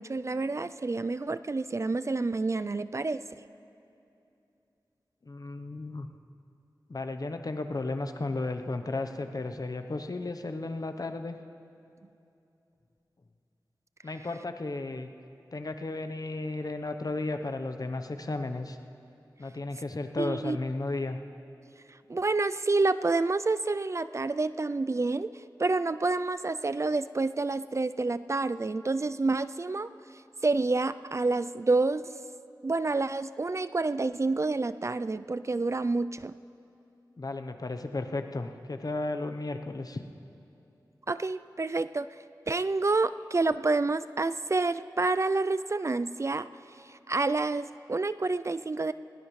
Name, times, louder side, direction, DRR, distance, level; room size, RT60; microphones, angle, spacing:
voice 1, 0.0-3.2 20.2-20.6 21.9-29.9 30.4-32.0 32.6-36.4 41.1-42.1 42.5-46.5 46.8-48.9, right 3 dB, 40° right, 13 dB, 0.3 m, -28 dB
voice 2, 5.2-6.1 6.9-11.4 14.0-15.1 15.5-18.8 19.4-21.2 37.2-40.0, left 2 dB, 55° left, 7 dB, 0.8 m, -34 dB
20.0 x 17.5 x 3.2 m, 2.7 s
wide cardioid pair, 50°, 8 cm